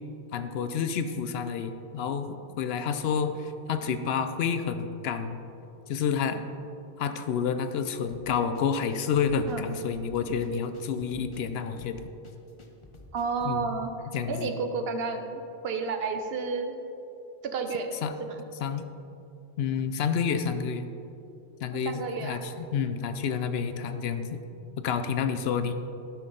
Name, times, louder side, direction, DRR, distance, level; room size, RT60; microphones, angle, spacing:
voice 1, 0.3-5.4 5.9-6.5 7.0-12.0 13.4-13.8 14.1-14.5 18.0-18.1 18.6-18.9 19.6-20.8 21.6-24.4 24.8-25.7, left 6 dB, 75° left, 9 dB, 0.8 m, -29 dB
sound 1, 8.1-13.6, left 2 dB, 35° left, 0.7 m, -51 dB
voice 2, 13.1-13.9 14.3-16.8 17.5-18.0 21.7-22.4, right 4 dB, 70° right, 6 dB, 0.9 m, -31 dB
11.5 x 6.0 x 3.8 m, 2.8 s
omnidirectional pair, 1.1 m